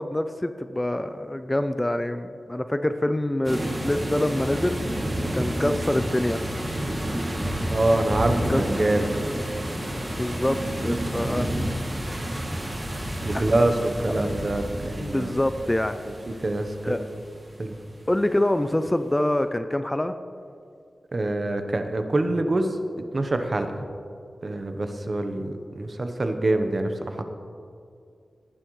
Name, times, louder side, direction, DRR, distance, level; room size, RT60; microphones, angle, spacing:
voice 1, 0.0-4.8 5.3-6.4 8.5-8.6 10.0-10.6 10.8-11.5 13.3-13.4 15.0-16.0 16.8-17.0 18.1-20.2, left 1 dB, 15° left, 9 dB, 0.4 m, -25 dB
sound 1, 3.4-18.0, right 1 dB, 25° right, 2.4 m, -30 dB
voice 2, 7.7-9.1 13.2-13.8 14.0-15.4 16.1-16.2 16.4-17.0 17.6-17.8 21.1-22.8 23.1-23.8 24.4-27.2, right 2 dB, 40° right, 6 dB, 0.9 m, -25 dB
18.0 x 9.9 x 3.1 m, 2.3 s
wide cardioid pair, 120°, 0 cm